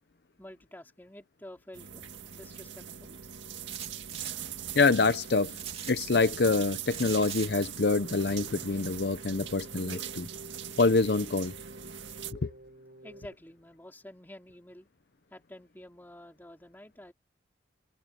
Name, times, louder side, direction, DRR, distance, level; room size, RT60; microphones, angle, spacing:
voice 1, 0.4-2.0 2.3-3.2 13.0-14.9 15.3-17.1, left 1 dB, 10° left, 3.4 m, -49 dB
sound 1, 1.7-12.3, right 9 dB, 85° right, 1.9 m, -41 dB
sound 2, 3.7-4.3 5.5-5.9 6.9-7.5, right 8 dB, 30° right, 2.9 m, -40 dB
voice 2, 4.7-5.6 5.9-10.3 10.8-11.5 12.3-12.5, left 3 dB, 60° left, 0.6 m, -26 dB
Keyboard (musical), 7.9-13.3, right 1 dB, 65° right, 4.8 m, -50 dB
head